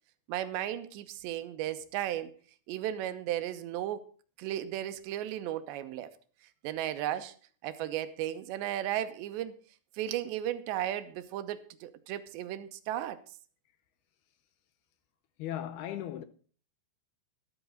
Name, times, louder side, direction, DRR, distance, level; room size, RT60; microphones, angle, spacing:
voice 1, 0.3-2.3 2.7-4.1 4.4-6.1 6.6-7.3 7.6-9.5 9.9-13.2, right 12 dB, 85° right, 3.2 m, -35 dB
voice 2, 15.4-16.2, left 11 dB, 75° left, 2.6 m, -37 dB
13.5 x 13.0 x 3.8 m
omnidirectional pair, 5.0 m